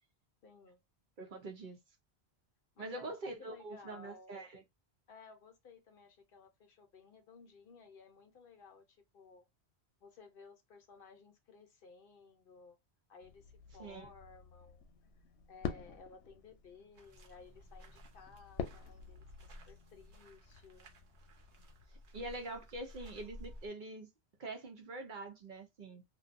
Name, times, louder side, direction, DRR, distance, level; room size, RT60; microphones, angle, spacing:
voice 1, 0.4-0.8 2.7-4.6 5.1-9.5 10.0-12.8 13.1-14.9 15.5-20.9, left 4 dB, 60° left, 0.7 m, -57 dB
voice 2, 1.2-1.8 2.8-4.6 13.8-14.1 22.1-24.1 24.4-26.0, right 2 dB, 55° right, 0.7 m, -44 dB
sound 1, 13.2-21.8, left 7 dB, 90° left, 0.9 m, -48 dB
sound 2, 16.9-23.7, left 1 dB, 90° right, 1.1 m, -55 dB
2.6 x 2.2 x 2.4 m
omnidirectional pair, 1.1 m